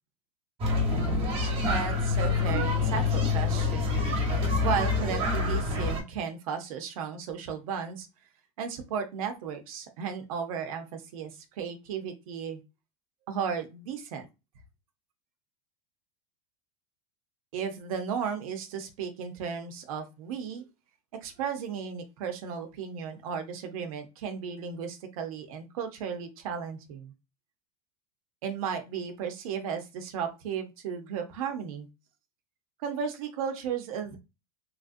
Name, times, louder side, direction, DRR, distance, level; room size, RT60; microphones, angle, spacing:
sound 1, 0.6-6.0, left 4 dB, 30° right, 1.2 m, -26 dB
voice 1, 1.5-4.1 4.6-8.1 8.6-12.6 13.3-14.3 17.5-20.6 21.2-27.1 28.4-31.9 32.8-34.2, right 7 dB, 70° right, 5 dB, 0.8 m, -34 dB
3.1 x 2.5 x 2.6 m, 0.26 s
supercardioid pair, 130°, 19 cm